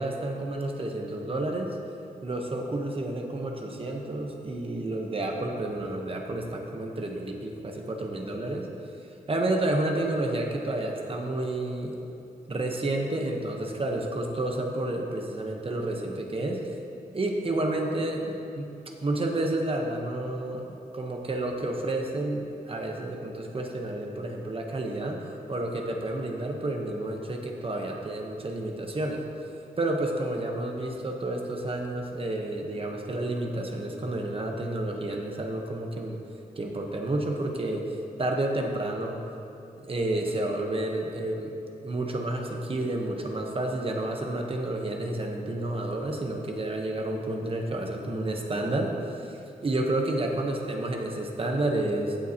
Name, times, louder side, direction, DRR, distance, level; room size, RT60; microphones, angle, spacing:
voice 1, 0.0-1.8 2.2-8.7 9.3-12.0 12.5-16.6 17.1-18.7 19.0-29.2 29.8-36.2 36.6-39.2 39.8-41.5 41.8-52.2, right 1 dB, 35° right, 1 dB, 1.0 m, -30 dB
16.0 x 7.0 x 2.9 m, 2.7 s
wide cardioid pair, 150°, 16 cm